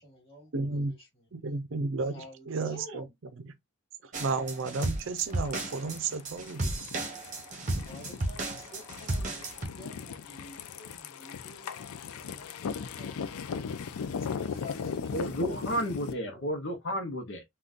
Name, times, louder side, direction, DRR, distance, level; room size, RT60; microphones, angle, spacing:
voice 1, 0.0-1.3 2.1-3.1 7.9-13.9 14.2-16.4, left 1 dB, 25° left, 2.1 m, -50 dB
voice 2, 0.5-0.9 1.3-3.1 3.4-3.5 4.0-6.7, right 4 dB, 60° right, 0.5 m, -33 dB
sound 1, 4.1-9.7, right 2 dB, 35° right, 0.9 m, -34 dB
sound 2, 5.3-16.1, left 6 dB, 85° left, 0.4 m, -38 dB
voice 3, 15.1-17.4, equal, 60° left, 0.7 m, -32 dB
3.8 x 2.3 x 2.4 m
head